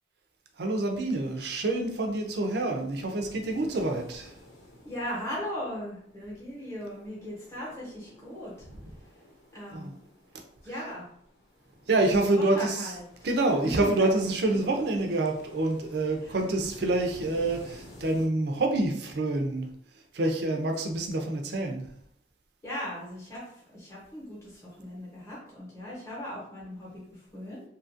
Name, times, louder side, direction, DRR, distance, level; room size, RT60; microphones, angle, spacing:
voice 1, 0.5-4.4 8.7-8.9 9.7-9.9 10.6-10.8 11.9-13.0 13.2-22.0, right 2 dB, 55° right, 3 dB, 0.4 m, -27 dB
sound 1, 0.9-18.3, left 1 dB, 80° left, 1.1 m, -53 dB
voice 2, 4.8-8.5 9.5-9.9 10.6-11.1 12.5-12.9 14.0-14.1 22.6-23.4 23.7-27.6, equal, 15° left, -7 dB, 0.9 m, -38 dB
2.7 x 2.4 x 2.6 m, 0.68 s
head